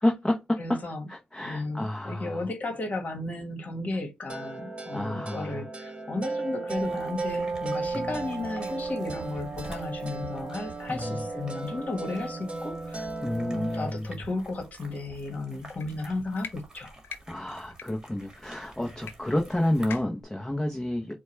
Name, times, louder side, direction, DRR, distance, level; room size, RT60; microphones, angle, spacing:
voice 1, 0.0-0.8 1.1-2.5 4.9-5.6 7.9-8.2 10.9-11.2 13.2-14.1 17.3-21.1, left 1 dB, 10° left, 0.8 m, -29 dB
voice 2, 0.6-1.1 1.4-13.1 13.5-17.0, left 2 dB, 40° left, 1.4 m, -34 dB
sound 1, 4.3-13.9, right 3 dB, 30° right, 1.0 m, -35 dB
sound 2, 6.7-20.0, right 2 dB, 15° right, 1.5 m, -49 dB
sound 3, 15.7-15.9 16.4-16.5 17.0-17.2 17.7-17.9 19.0-19.1 19.4-19.5 19.9-20.2, left 7 dB, 70° left, 0.6 m, -40 dB
4.6 x 2.2 x 4.4 m
cardioid pair, 80°, 4 cm